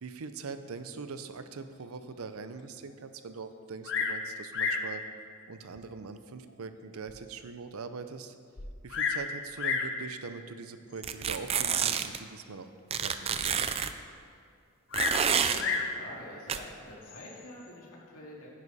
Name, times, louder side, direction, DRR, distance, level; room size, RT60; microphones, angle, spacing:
voice 1, 0.0-5.0 5.5-8.3 8.8-12.7 13.0-13.7, right 4 dB, 75° right, 10 dB, 0.6 m, -42 dB
Bird vocalization bird call bird song, 3.8-4.2 4.5-4.9 5.8-5.9 6.5-6.6 7.1-7.2 7.4-7.5 8.6-9.3 9.6-9.9 10.9-11.3 14.9-15.9 17.0-17.5, left 5 dB, 60° left, 0.9 m, -31 dB
sound 1, 11.0-12.2 12.9-13.9 14.9-15.6 16.5-16.6, right 7 dB, 30° right, 0.4 m, -28 dB
voice 2, 15.2-18.5, left 1 dB, 85° left, -3 dB, 2.2 m, -47 dB
9.8 x 9.7 x 4.1 m, 2.2 s
head